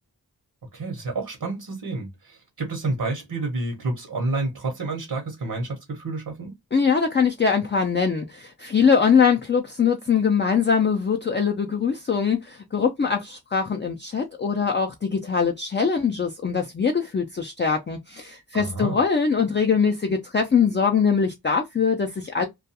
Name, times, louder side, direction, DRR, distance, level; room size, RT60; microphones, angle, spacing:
voice 1, 0.7-6.5 18.5-19.0, right 2 dB, 75° right, 0.9 m, -29 dB
voice 2, 6.7-22.4, left 6 dB, 30° left, 0.4 m, -22 dB
2.3 x 2.2 x 2.7 m
wide cardioid pair, 65°, 37 cm